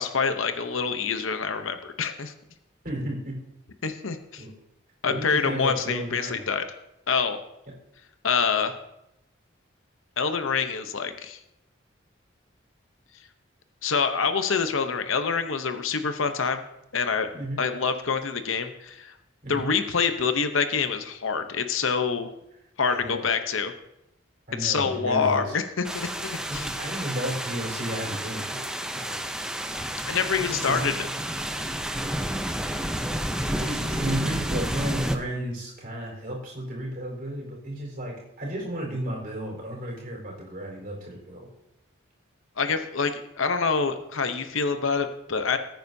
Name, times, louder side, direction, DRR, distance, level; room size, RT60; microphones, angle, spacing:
voice 1, 0.0-2.3 3.8-4.4 5.0-6.6 7.1-7.4 8.2-8.7 10.2-11.4 13.8-16.6 16.9-17.3 17.6-19.2 19.5-22.3 22.8-23.7 24.6-26.7 30.1-31.1 42.6-45.6, left 5 dB, 80° left, 8 dB, 0.8 m, -26 dB
voice 2, 2.8-3.3 4.4-4.5 5.1-6.4 17.3-17.6 19.4-19.7 22.8-23.3 24.5-25.5 26.5-28.6 28.9-29.2 30.5-30.9 33.6-41.5, right 1 dB, 45° right, -2 dB, 4.3 m, -33 dB
sound 1, 25.8-35.2, right 1 dB, 5° right, 0.5 m, -30 dB
20.0 x 9.1 x 2.7 m, 0.84 s
head